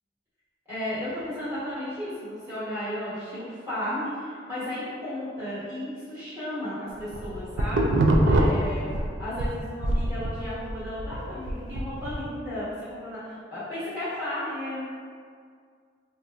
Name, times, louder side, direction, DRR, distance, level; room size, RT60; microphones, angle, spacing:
voice 1, 0.6-7.9 8.2-14.8, left 1 dB, 15° right, -14 dB, 1.2 m, -34 dB
sound 1, 7.0-9.5 9.8-12.2, right 1 dB, 75° right, 0.3 m, -24 dB
4.4 x 2.2 x 2.5 m, 2.1 s
head